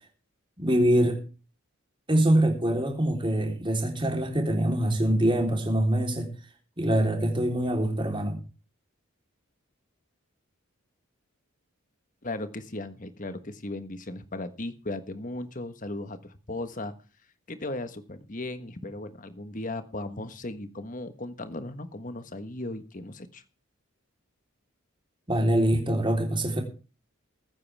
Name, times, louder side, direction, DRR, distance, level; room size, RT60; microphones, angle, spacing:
voice 1, 0.6-1.2 2.1-6.3 6.8-8.4 25.3-26.6, right 1 dB, 25° right, 2 dB, 3.6 m, -24 dB
voice 2, 12.2-16.9 17.5-23.4, left 2 dB, 35° left, 11 dB, 1.4 m, -36 dB
21.5 x 9.7 x 3.5 m, 0.35 s
head